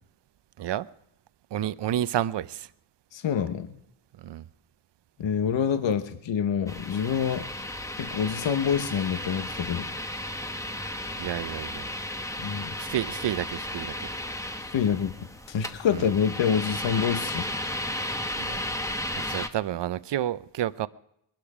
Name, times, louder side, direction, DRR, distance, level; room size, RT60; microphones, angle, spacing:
voice 1, 1.5-2.7 4.2-4.4 11.2-11.9 12.8-14.1 15.9-16.1 18.3-18.6 19.3-20.9, right 11 dB, 55° right, 0.7 m, -30 dB
voice 2, 3.1-3.8 5.2-7.5 8.0-9.9 12.4-12.7 14.7-15.1 15.5-17.5, left 7 dB, 65° left, 1.1 m, -26 dB
Extractor Sample, 6.7-19.5, left 1 dB, 5° left, 1.0 m, -34 dB
21.5 x 12.0 x 5.0 m
cardioid pair, 70°, 49 cm